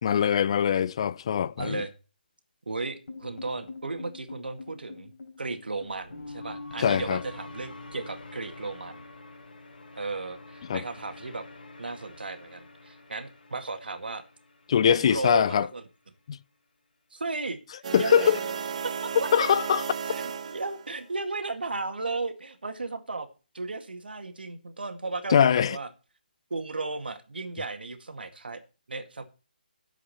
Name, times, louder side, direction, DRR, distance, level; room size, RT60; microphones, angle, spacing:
voice 1, 0.0-1.8 6.8-7.2 10.7-10.8 14.7-15.7 16.3-16.4 17.9-18.4 19.3-19.8 25.3-25.8, left 8 dB, 35° left, 0.4 m, -22 dB
voice 2, 1.6-1.9 2.7-5.1 5.4-9.0 10.0-11.4 11.8-14.2 14.9-15.8 17.1-17.6 18.0-18.3 19.0-19.3 20.1-23.3 23.5-25.9 26.5-28.6 28.9-29.2, right 3 dB, 80° right, 2.0 m, -35 dB
sound 1, 3.1-15.3, left 3 dB, 70° left, 3.7 m, -45 dB
sound 2, 17.8-21.0, right 6 dB, 45° right, 1.2 m, -34 dB
10.0 x 7.5 x 4.2 m
figure-of-eight pair, 155°, 5 cm